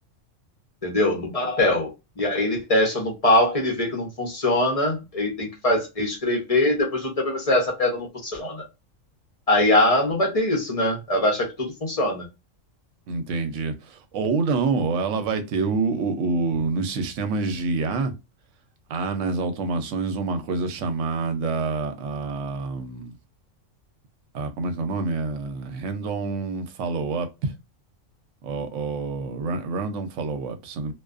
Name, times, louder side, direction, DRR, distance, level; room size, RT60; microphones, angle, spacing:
voice 1, 0.8-8.6 9.5-12.3, left 1 dB, 35° left, 0.8 m, -22 dB
voice 2, 13.1-18.1 18.9-23.1 24.3-27.5 28.4-30.9, right 4 dB, 75° right, 0.9 m, -27 dB
2.4 x 2.3 x 2.3 m
omnidirectional pair, 1.3 m